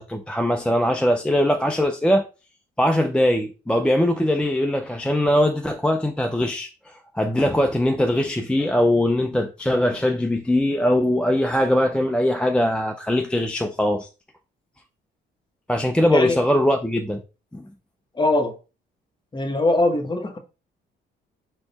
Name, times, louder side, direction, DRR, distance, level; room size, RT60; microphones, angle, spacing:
voice 1, 0.0-2.3 2.8-6.7 7.1-14.1 15.7-17.2 17.5-17.7, left 1 dB, 5° left, 0.5 m, -21 dB
voice 2, 18.1-18.6 19.3-20.4, left 2 dB, 25° left, 1.0 m, -21 dB
4.0 x 3.0 x 4.0 m
cardioid pair, 90°, 20 cm